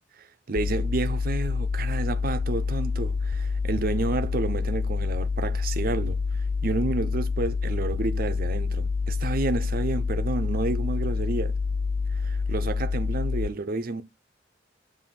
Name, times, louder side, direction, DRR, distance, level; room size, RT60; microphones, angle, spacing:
voice 1, 0.0-11.5 12.1-14.0, right 3 dB, 50° right, 0.6 m, -30 dB
sound 1, 0.6-13.5, left 4 dB, 40° left, 0.3 m, -27 dB
7.5 x 2.6 x 5.6 m
head